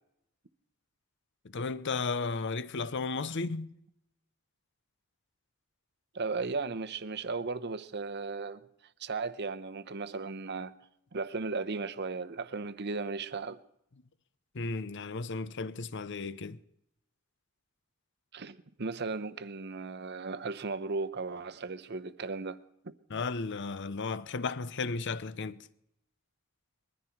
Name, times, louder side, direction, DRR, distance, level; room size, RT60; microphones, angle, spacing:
voice 1, 1.4-3.7 14.5-16.6 23.1-25.6, left 4 dB, 60° left, 0.7 m, -34 dB
voice 2, 6.1-8.6 9.0-10.7 11.1-13.6 18.3-22.6 22.8-22.9, right 4 dB, 55° right, 0.8 m, -36 dB
21.5 x 14.0 x 4.6 m
head